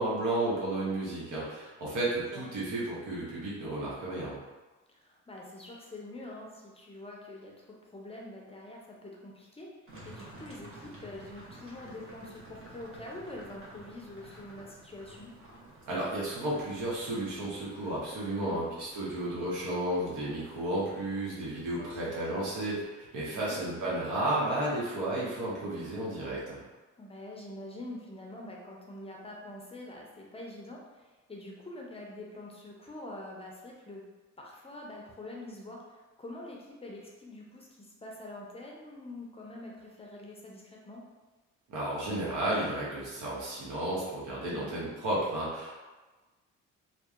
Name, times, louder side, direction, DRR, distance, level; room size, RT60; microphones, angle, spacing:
voice 1, 0.0-4.4 15.9-26.6 41.7-45.7, right 1 dB, 80° right, -7 dB, 1.0 m, -33 dB
voice 2, 4.9-7.5 7.9-9.7 10.0-15.3 18.4-18.7 21.8-22.1 23.3-23.6 27.0-34.0 34.4-41.0 44.5-44.8, left 1 dB, 20° left, -2 dB, 0.5 m, -45 dB
sound 1, 9.9-22.9, right 1 dB, 45° right, 0.8 m, -53 dB
2.6 x 2.2 x 2.4 m, 1.2 s
cardioid pair, 90°, 30 cm